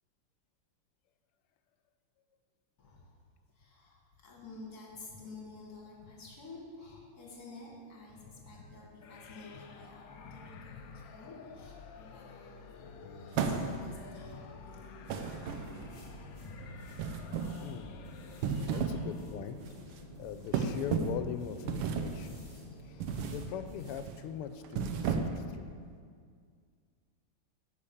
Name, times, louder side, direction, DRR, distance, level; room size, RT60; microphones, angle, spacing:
voice 1, 2.8-3.1 3.5-15.8 16.4-16.8 18.5-19.1, left 3 dB, 45° left, -2 dB, 2.3 m, -50 dB
sound 1, 9.0-19.6, left 6 dB, 70° left, 1.2 m, -52 dB
sound 2, 13.3-14.0 15.1-16.0 17.0-17.7 18.3-19.1 19.4-19.7 20.5-21.3 21.7-22.2 23.0-23.5 23.8-24.1 24.6-25.5, right 6 dB, 85° right, 1.6 m, -33 dB
sound 3, 15.6-24.0, equal, 30° left, 2.5 m, -51 dB
voice 2, 17.6-18.0 18.5-19.6 19.9-22.4 22.8-25.7, left 9 dB, 90° left, 10 dB, 1.6 m, -41 dB
9.8 x 5.3 x 7.1 m, 2.1 s
omnidirectional pair, 2.4 m